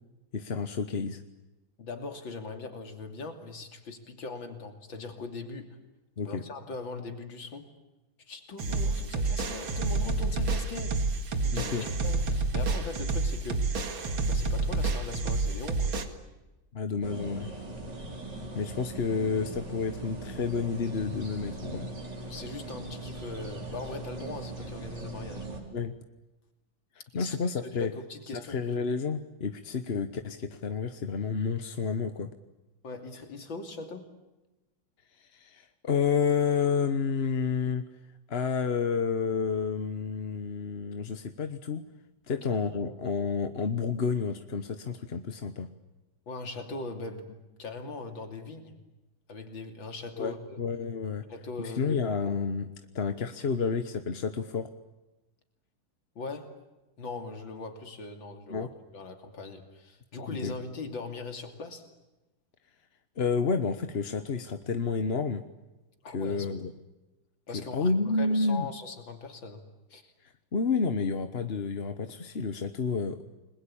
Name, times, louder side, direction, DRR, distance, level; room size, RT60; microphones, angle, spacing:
voice 1, 0.3-1.2 6.2-6.4 11.5-11.9 16.7-17.5 18.5-21.9 25.7-25.9 27.1-27.9 28.3-32.3 35.2-37.8 38.3-41.8 42.3-45.7 50.2-51.2 51.6-52.7 52.9-54.7 58.5-58.7 60.3-60.5 63.2-65.4 66.1-66.7 67.5-68.7 70.5-73.2, left 5 dB, 40° left, 8 dB, 1.1 m, -30 dB
voice 2, 1.8-5.8 6.3-7.7 8.2-13.7 14.2-15.9 22.2-25.5 27.1-27.4 27.6-28.8 32.8-34.1 42.3-42.5 42.8-43.0 46.3-48.8 49.3-50.6 51.3-52.1 56.2-56.5 57.0-61.8 66.0-66.5 67.5-69.6 69.9-70.1, left 3 dB, 70° left, 6 dB, 3.6 m, -40 dB
sound 1, 8.6-16.0, right 3 dB, 75° right, 2.9 m, -29 dB
sound 2, 17.0-25.6, right 2 dB, 55° right, 4.9 m, -40 dB
30.0 x 21.5 x 8.7 m, 1.0 s
omnidirectional pair, 2.2 m